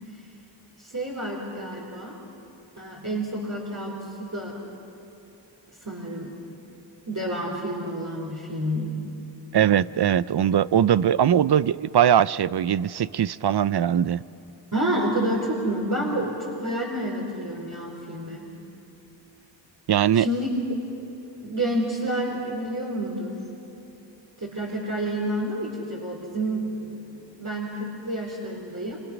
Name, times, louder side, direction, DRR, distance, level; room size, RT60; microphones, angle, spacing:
voice 1, 0.8-2.2 2.7-4.6 5.8-6.3 7.1-8.9 14.7-18.5 20.1-20.5 21.4-23.4 24.4-29.0, right 1 dB, 40° right, -4 dB, 4.1 m, -29 dB
voice 2, 9.5-14.2 19.9-20.3, right 9 dB, 55° right, 18 dB, 0.6 m, -21 dB
26.5 x 26.0 x 6.1 m, 2.8 s
cardioid pair, 45°, 47 cm